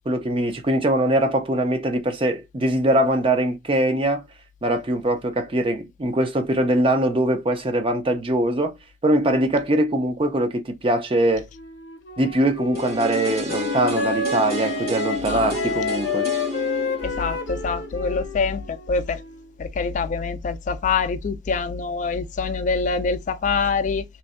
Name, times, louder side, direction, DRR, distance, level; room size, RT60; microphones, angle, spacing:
voice 1, 0.1-4.2 4.6-8.7 9.0-11.5 12.2-16.3, right 1 dB, 30° right, 0.5 m, -22 dB
Wind instrument woodwind instrument, 11.5-19.5, left 4 dB, 65° left, 0.8 m, -30 dB
sound 1, 12.7-18.7 19.0-19.1, left 1 dB, 55° right, 1.6 m, -31 dB
voice 2, 15.2-15.8 17.0-19.2 19.6-24.0, left 4 dB, 40° left, 0.3 m, -25 dB
3.1 x 2.6 x 2.4 m
head